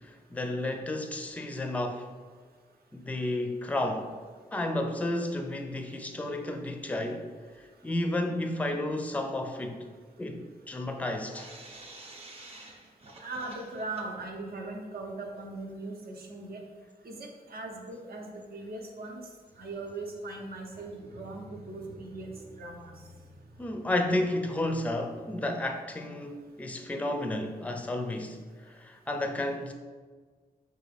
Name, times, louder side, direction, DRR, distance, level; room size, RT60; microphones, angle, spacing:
voice 1, 0.0-2.1 2.9-4.1 4.5-7.3 7.8-9.9 10.2-11.5 23.6-29.7, left 1 dB, 10° left, 5 dB, 0.4 m, -32 dB
sound 1, 11.3-14.4 14.7-14.8 15.0-15.1 16.0-16.1 17.2-17.3 17.8-17.9 18.3-18.4 19.5-25.1, right 1 dB, 40° right, 0.7 m, -51 dB
voice 2, 13.2-16.6 17.0-19.2 19.6-22.3 22.6-22.9, right 2 dB, 70° right, 1 dB, 0.7 m, -39 dB
5.8 x 2.3 x 3.3 m, 1.5 s
cardioid pair, 85°, 16 cm